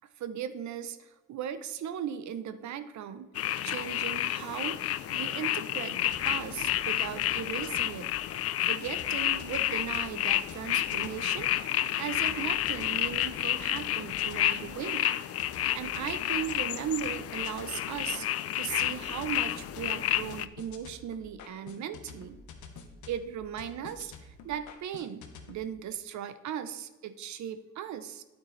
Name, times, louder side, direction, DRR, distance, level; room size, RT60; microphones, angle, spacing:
voice 1, 0.2-3.3 3.6-8.1 8.6-11.7 12.0-15.1 15.7-18.3 18.6-22.4 23.1-28.2, right 9 dB, 70° right, 12 dB, 0.7 m, -37 dB
sound 1, 3.4-20.5, left 12 dB, 50° left, 0.4 m, -30 dB
sound 2, 6.1-8.4 8.8-11.7 12.1-25.6, left 4 dB, 80° left, 1.1 m, -49 dB
9.3 x 8.1 x 3.2 m, 1.2 s
cardioid pair, 90°, 30 cm